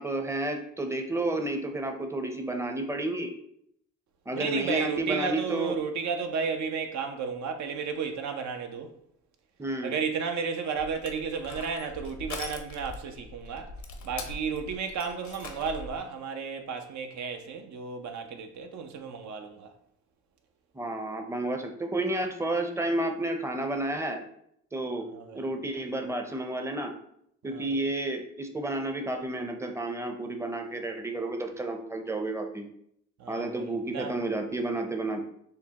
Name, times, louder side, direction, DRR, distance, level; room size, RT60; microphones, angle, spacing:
voice 1, 0.0-3.3 4.3-5.7 9.6-10.0 20.7-24.2 24.7-26.9 27.4-32.7 33.3-35.2, right 2 dB, 10° right, 0.6 m, -31 dB
voice 2, 4.3-8.9 9.8-13.7 14.0-19.7 25.0-25.5 27.4-27.8 31.1-31.3 33.2-34.1, right 6 dB, 65° right, 0.7 m, -33 dB
Crushing, 10.8-16.0, left 3 dB, 65° left, 0.8 m, -42 dB
6.5 x 2.2 x 2.9 m
cardioid pair, 90°, 30 cm